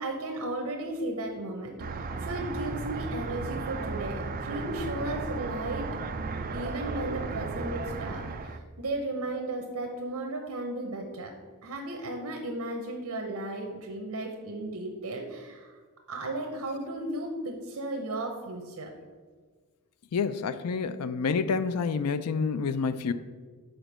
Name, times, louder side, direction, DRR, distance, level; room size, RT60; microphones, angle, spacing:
voice 1, 0.0-5.9 6.5-11.3 11.6-15.7 16.1-18.9, right 2 dB, 85° right, 2 dB, 0.8 m, -35 dB
sound 1, 1.8-8.6, right 3 dB, 40° right, 0.4 m, -35 dB
voice 2, 20.1-23.1, left 5 dB, 85° left, 13 dB, 0.4 m, -28 dB
5.1 x 4.5 x 6.1 m, 1.5 s
head